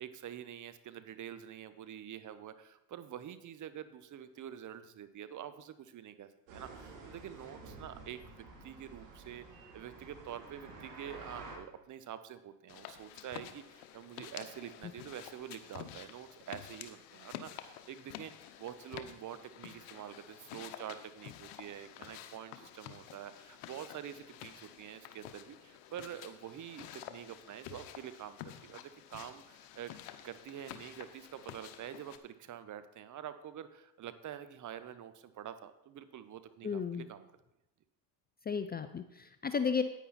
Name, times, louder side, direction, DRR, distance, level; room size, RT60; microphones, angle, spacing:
voice 1, 0.0-9.5 9.7-29.9 30.2-37.3, right 10 dB, 40° right, 12 dB, 0.9 m, -47 dB
sound 1, 6.5-11.5, right 3 dB, 70° right, 3.6 m, -50 dB
sound 2, 12.7-32.2, left 11 dB, 75° left, 1.1 m, -50 dB
voice 2, 36.6-37.1 38.5-39.8, left 6 dB, 20° left, 10 dB, 0.5 m, -33 dB
10.0 x 9.2 x 4.2 m, 0.87 s
hypercardioid pair, 85°, 48 cm